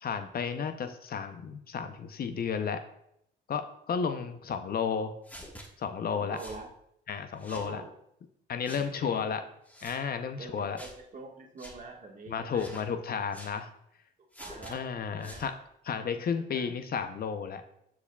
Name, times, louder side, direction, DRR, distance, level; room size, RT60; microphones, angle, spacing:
voice 1, 0.0-2.8 3.5-5.1 5.8-6.4 7.1-7.8 8.5-9.4 9.8-10.8 12.3-13.7 14.7-15.5 15.9-17.6, left 6 dB, 50° left, 8 dB, 0.6 m, -32 dB
sound 1, 5.2-5.7 6.4-6.6 7.4-7.7 8.6-8.9 9.7-10.0 10.8-11.0 11.6-11.8 12.5-12.9 13.3-13.6 14.3-14.7 15.2-15.5, equal, 10° left, 1.2 m, -47 dB
voice 2, 6.1-6.7 7.5-7.9 8.6-9.3 10.4-12.7 14.4-14.8 15.1-15.4 16.1-16.7, right 3 dB, 40° right, 1 dB, 1.5 m, -45 dB
14.0 x 4.8 x 2.3 m, 0.76 s
cardioid pair, 90°, 20 cm